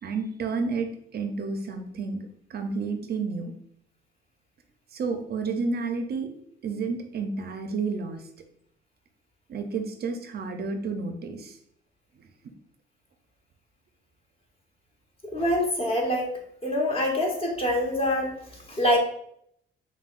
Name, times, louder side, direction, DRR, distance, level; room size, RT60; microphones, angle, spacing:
voice 1, 0.0-3.5 4.9-6.3 6.6-8.3 9.5-11.6 12.2-12.3, right 4 dB, 50° right, 5 dB, 0.5 m, -31 dB
voice 2, 15.2-16.3 16.6-19.0, left 1 dB, 30° left, 0 dB, 1.1 m, -25 dB
5.6 x 2.2 x 2.4 m, 0.70 s
cardioid pair, 90°, 20 cm